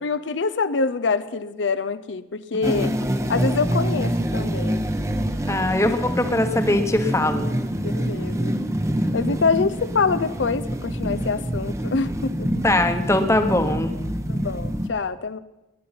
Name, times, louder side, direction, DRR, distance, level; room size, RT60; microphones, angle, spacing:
voice 1, 0.0-2.9 3.3-4.8 7.8-8.5 9.1-12.5 14.3-15.4, left 4 dB, 85° left, 13 dB, 0.6 m, -25 dB
sound 1, 2.6-14.9, equal, 15° right, 0.8 m, -26 dB
voice 2, 5.5-7.5 12.6-13.9, left 1 dB, 15° left, 7 dB, 1.0 m, -21 dB
19.5 x 10.5 x 5.8 m, 1.0 s
head